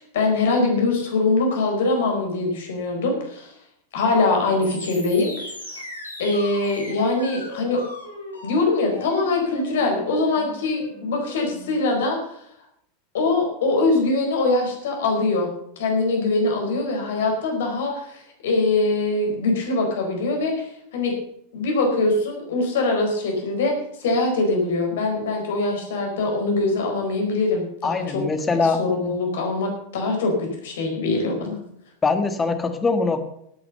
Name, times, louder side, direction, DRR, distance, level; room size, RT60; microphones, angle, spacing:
voice 1, 0.0-3.5 3.9-5.5 6.2-7.8 8.4-12.2 13.1-15.5 15.8-20.6 20.9-21.1 21.5-23.7 24.0-28.2 28.8-31.5, left 3 dB, 60° left, 2 dB, 4.6 m, -23 dB
sound 1, 4.6-11.8, left 1 dB, 85° left, 4.2 m, -38 dB
voice 2, 27.8-28.8 32.0-33.2, left 4 dB, 20° left, 9 dB, 1.7 m, -22 dB
12.0 x 9.6 x 6.7 m, 0.73 s
figure-of-eight pair, 85°, 0 cm